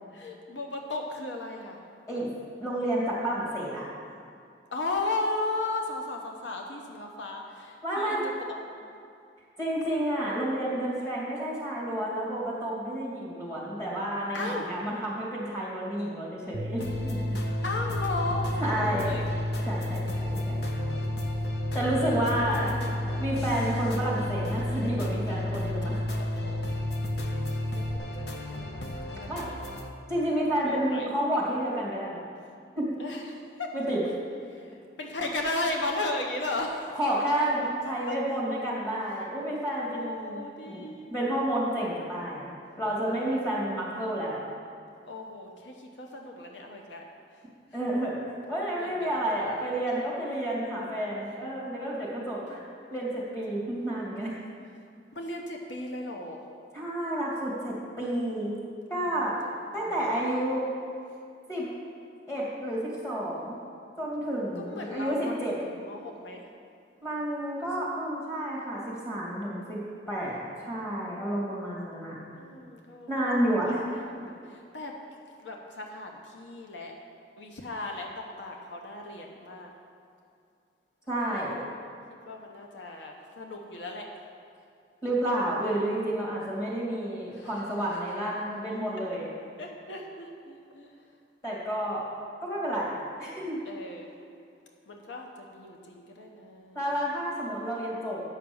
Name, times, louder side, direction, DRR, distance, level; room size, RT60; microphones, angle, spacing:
voice 1, 0.1-1.8 4.7-8.8 14.3-14.7 17.6-19.3 20.3-20.4 20.8-21.5 22.1-23.3 26.2-26.6 27.1-27.4 27.7-29.7 30.6-31.1 33.0-33.7 34.5-36.9 38.1-38.2 39.8-41.1 43.1-43.3 45.1-47.0 48.8-49.7 52.2-52.6 53.6-53.7 55.1-56.5 59.0-59.3 59.7-59.9 64.6-66.4 72.3-75.0 75.4-77.0 77.4-79.7 82.3-84.1 87.3-87.6 87.9-88.0 88.8-89.3 89.6-90.9 93.7-94.1 94.9-96.8 97.6-97.7, left 2 dB, 90° left, 1 dB, 0.9 m, -36 dB
voice 2, 2.6-3.9 7.8-8.2 9.6-17.4 18.6-19.2 19.6-20.6 21.7-22.7 23.2-26.0 29.3-29.5 30.1-32.2 32.8-32.9 33.7-34.0 36.9-40.8 41.1-42.5 42.8-44.4 47.7-48.2 48.5-52.6 52.9-54.3 56.7-58.5 58.9-59.4 59.7-60.7 61.5-61.7 62.3-63.6 64.0-65.5 67.0-69.8 70.1-70.4 70.6-72.1 73.1-73.8 81.1-81.6 85.0-89.3 91.4-92.0 92.4-93.6 96.7-98.2, right 1 dB, 15° left, -6 dB, 2.5 m, -30 dB
sound 1, 16.5-28.0, left 1 dB, 50° right, 0.8 m, -31 dB
sound 2, 16.8-29.9, left 1 dB, 65° left, 0.8 m, -39 dB
9.2 x 5.9 x 7.0 m, 2.4 s
head